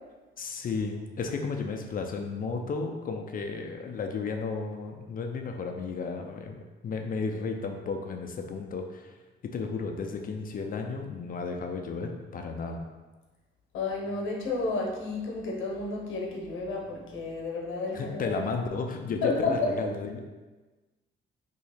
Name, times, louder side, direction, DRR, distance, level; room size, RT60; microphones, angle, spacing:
voice 1, 0.4-9.1 9.4-12.9 17.9-20.2, left 4 dB, 45° left, 4 dB, 0.5 m, -33 dB
voice 2, 13.7-18.4 19.2-19.7, left 3 dB, 80° left, -1 dB, 0.9 m, -31 dB
2.9 x 2.7 x 4.2 m, 1.2 s
cardioid pair, 90°, 20 cm